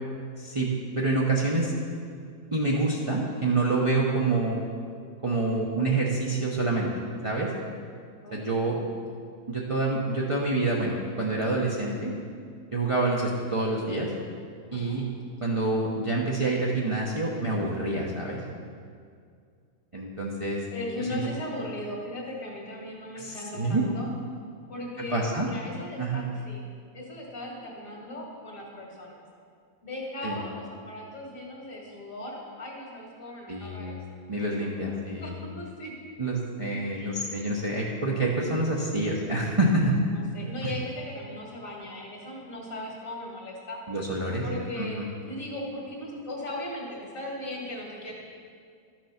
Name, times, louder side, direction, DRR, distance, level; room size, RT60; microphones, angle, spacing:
voice 1, 0.4-0.7 1.0-1.7 2.5-4.6 5.2-6.9 7.2-7.5 8.3-8.8 9.5-12.1 12.7-14.1 14.7-15.0 15.4-18.4 19.9-20.6 21.1-21.2 23.1-23.8 25.1-25.5 26.0-26.2 30.2-30.4 33.5-34.0 34.3-35.4 36.2-40.0 43.9-44.5 44.8-45.1, right 2 dB, 25° right, -4 dB, 0.9 m, -27 dB
voice 2, 8.2-8.9 14.7-15.0 20.7-24.1 24.7-26.6 26.9-29.2 29.8-34.0 34.5-35.9 36.9-37.2 40.1-43.8 44.4-45.0 45.3-48.1, left 1 dB, 60° left, -2 dB, 2.5 m, -38 dB
12.5 x 6.1 x 5.8 m, 2.2 s
omnidirectional pair, 1.6 m